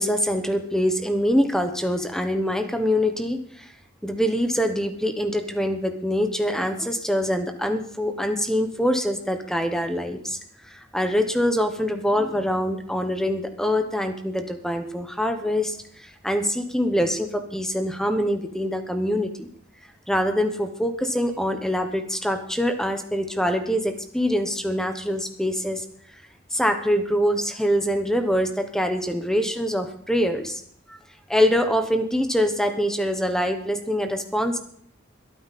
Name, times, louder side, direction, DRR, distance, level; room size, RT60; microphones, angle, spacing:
voice 1, 0.0-3.7 4.0-10.4 10.6-19.5 20.1-25.8 26.5-30.6 30.9-31.0 31.3-34.6, equal, 5° left, 7 dB, 1.1 m, -24 dB
22.0 x 9.1 x 4.2 m, 0.65 s
head